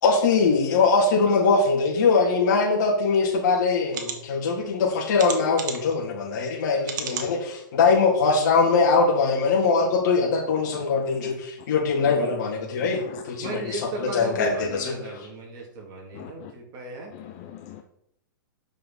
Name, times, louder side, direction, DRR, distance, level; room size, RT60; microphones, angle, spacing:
voice 1, 0.0-14.9, left 4 dB, 55° left, -2 dB, 3.5 m, -22 dB
sound 1, 3.1-3.2 3.9-4.2 5.2-5.9 6.8-7.3 7.9-8.0 8.3-8.4, right 7 dB, 60° right, 1.8 m, -33 dB
voice 2, 12.8-13.6 16.1-16.5 17.1-17.8, left 11 dB, 40° left, 6 dB, 0.7 m, -42 dB
voice 3, 13.4-17.2, right 2 dB, 35° right, -1 dB, 3.3 m, -36 dB
9.1 x 6.5 x 4.4 m, 0.79 s
hypercardioid pair, 140°, 11 cm